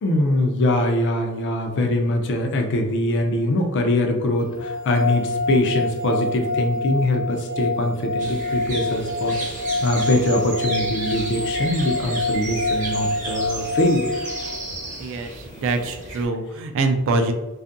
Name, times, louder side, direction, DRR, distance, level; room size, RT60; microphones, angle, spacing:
voice 1, 0.0-14.1, left 1 dB, 55° left, 4 dB, 0.4 m, -22 dB
sound 1, 4.5-14.7, left 2 dB, 85° left, 0.9 m, -27 dB
sound 2, 8.2-16.3, right 2 dB, 40° right, 0.7 m, -33 dB
voice 2, 15.0-17.3, right 3 dB, 65° right, 6 dB, 0.3 m, -24 dB
2.5 x 2.4 x 2.5 m, 1.1 s
head